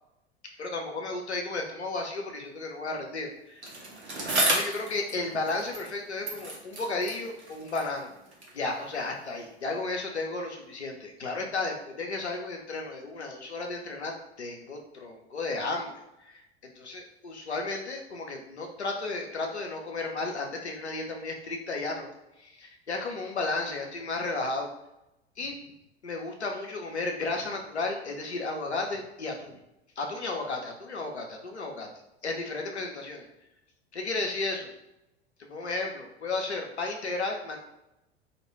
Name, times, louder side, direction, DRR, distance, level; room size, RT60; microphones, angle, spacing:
voice 1, 0.6-3.7 4.5-8.1 8.5-14.1 14.4-15.9 16.2-16.4 16.8-22.1 22.4-24.7 25.4-25.5 26.0-29.6 30.0-31.9 32.2-33.3 33.9-34.7 35.4-37.6, left 3 dB, 90° left, 2 dB, 0.6 m, -33 dB
Bicycle, 3.6-6.0 6.2-8.6 9.4-9.5, right 2 dB, 85° right, 0.8 m, -33 dB
2.4 x 2.2 x 3.1 m, 0.89 s
figure-of-eight pair, 80°, 33 cm